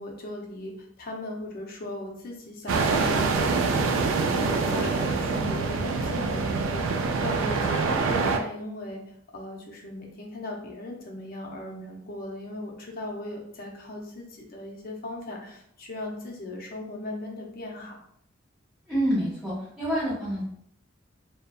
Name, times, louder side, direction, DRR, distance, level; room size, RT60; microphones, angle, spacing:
voice 1, 0.0-9.0 9.3-17.9, left 1 dB, 50° left, 0 dB, 0.5 m, -38 dB
sound 1, 2.7-8.4, right 4 dB, 80° right, 0.3 m, -25 dB
voice 2, 18.9-20.4, equal, 5° right, -11 dB, 1.2 m, -27 dB
2.7 x 2.1 x 2.3 m, 0.70 s
head